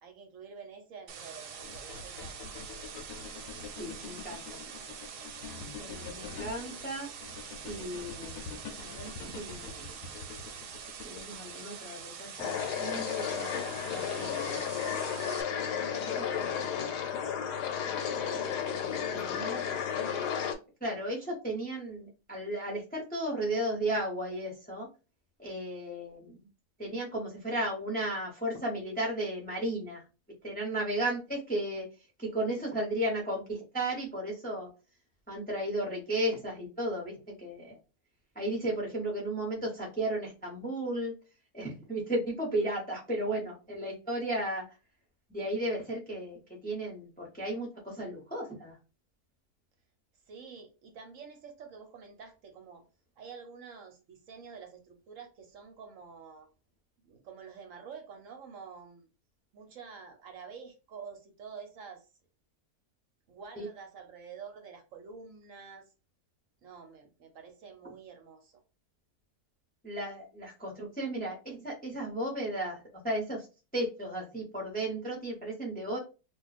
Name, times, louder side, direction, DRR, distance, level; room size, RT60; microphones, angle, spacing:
voice 1, 0.0-2.5 50.3-52.8 53.2-56.5 57.0-59.1 59.5-62.1 63.3-65.9 66.6-68.6, right 6 dB, 65° right, 5 dB, 0.9 m, -48 dB
sound 1, 1.1-15.4, right 7 dB, 85° right, 1.2 m, -45 dB
sound 2, 1.6-11.6, left 5 dB, 70° left, 0.9 m, -46 dB
voice 2, 3.8-4.6 5.8-7.1 7.6-9.1 9.3-9.9 11.0-14.7 15.5-17.1 19.1-19.6 20.8-24.9 25.4-26.5 26.8-30.0 30.4-31.9 32.2-34.7 35.3-37.8 38.3-41.1 41.5-44.7 45.3-48.8 63.6-63.7 69.8-73.5 73.7-76.0, right 1 dB, 10° left, -1 dB, 0.6 m, -35 dB
sound 3, 12.4-20.5, left 8 dB, 85° left, 1.2 m, -33 dB
2.4 x 2.3 x 4.0 m, 0.31 s
omnidirectional pair, 1.7 m